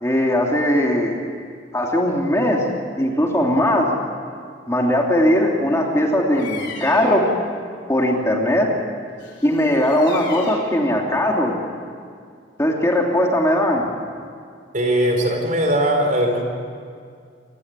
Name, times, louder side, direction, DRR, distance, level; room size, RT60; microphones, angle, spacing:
voice 1, 0.0-1.2 1.7-2.7 3.0-3.9 4.7-7.3 7.9-8.7 9.4-11.5 12.6-13.9, left 1 dB, 15° left, 0 dB, 2.7 m, -19 dB
Bird vocalization bird call bird song, 6.3-7.3 9.2-10.8, left 5 dB, 75° left, 4.0 m, -37 dB
voice 2, 14.7-16.4, right 1 dB, 45° right, 3 dB, 4.8 m, -19 dB
28.0 x 17.0 x 9.7 m, 2.2 s
head